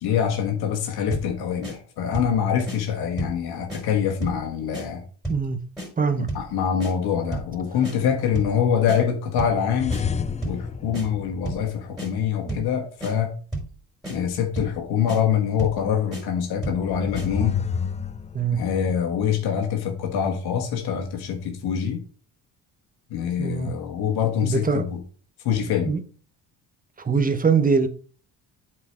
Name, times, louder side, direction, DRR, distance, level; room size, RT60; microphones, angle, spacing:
voice 1, 0.0-5.0 6.1-10.0 10.4-13.3 14.1-17.6 18.5-22.0 23.1-25.0 25.4-26.0, left 8 dB, 80° left, 1.5 m, -25 dB
sound 1, 1.1-1.3 1.6-1.8 2.1-2.4 2.7-2.8 3.2-3.4 3.7-3.8 4.2-4.4 4.7-4.9 5.2-5.5 5.8-5.9 6.3-6.5 6.8-6.9 7.3-7.5 7.8-8.0 8.3-8.6 8.9-9.0 9.4-9.6 9.9-10.0 10.4-10.6 10.9-11.1 11.5-11.7 12.0-12.1 12.5-12.7 13.0-13.1 13.5-13.7 14.0-14.2 14.6-14.8 15.1-15.2 15.6-15.8 16.1-16.2 16.6-16.8 17.1-17.3, right 1 dB, ahead, 4.2 m, -31 dB
voice 2, 5.3-5.6 6.0-6.3 12.5-12.6 18.3-18.6 23.4-23.7 24.4-24.9 25.9-26.0 27.0-27.9, right 5 dB, 20° right, 0.9 m, -22 dB
sound 2, 9.7-12.2 16.7-19.0, left 6 dB, 20° left, 0.4 m, -30 dB
7.9 x 4.6 x 4.4 m
cardioid pair, 95°, 38 cm